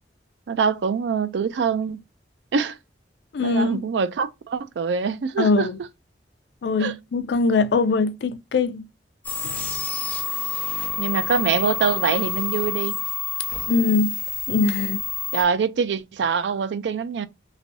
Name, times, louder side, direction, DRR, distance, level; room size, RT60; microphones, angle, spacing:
voice 1, 0.5-2.0 2.5-2.8 3.4-5.7 6.8-6.9 11.0-13.0 15.3-17.3, right 6 dB, 75° right, 0.4 m, -24 dB
voice 2, 3.3-3.8 5.4-5.8 6.6-8.8 9.4-9.9 13.7-14.2 14.5-15.0, left 3 dB, 70° left, 0.4 m, -22 dB
sound 1, 9.2-15.4, left 5 dB, 10° left, 0.8 m, -28 dB
3.2 x 2.6 x 2.6 m
head